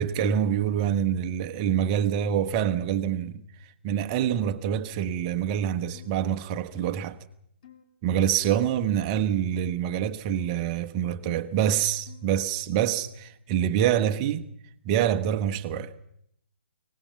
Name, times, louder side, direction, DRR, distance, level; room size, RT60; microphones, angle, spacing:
voice 1, 0.0-3.4 3.8-7.2 8.0-14.5 14.8-15.9, right 9 dB, 30° right, 1.1 m, -26 dB
sound 1, 5.9-6.2 6.7-7.0 7.6-7.8 8.6-8.9 9.5-9.8 10.4-10.6 11.2-11.5 12.1-12.4, left 10 dB, 45° left, 2.4 m, -52 dB
23.5 x 19.0 x 7.0 m
figure-of-eight pair, 130°, 6 cm